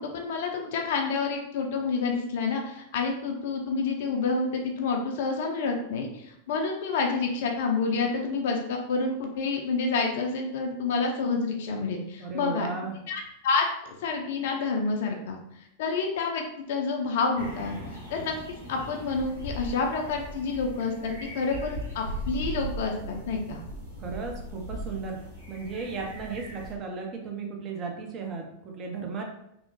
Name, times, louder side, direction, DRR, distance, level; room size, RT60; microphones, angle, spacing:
voice 1, 0.0-12.7 13.1-15.4 15.8-16.4 16.7-17.8 18.1-23.6, left 4 dB, 55° left, 2 dB, 0.4 m, -28 dB
voice 2, 12.2-12.9 24.0-25.2 25.5-29.2, right 4 dB, 30° right, 2 dB, 0.5 m, -35 dB
sound 1, 17.4-26.7, right 1 dB, 80° right, 1.1 m, -38 dB
2.9 x 2.0 x 2.7 m, 0.80 s
figure-of-eight pair, 90°, 0 cm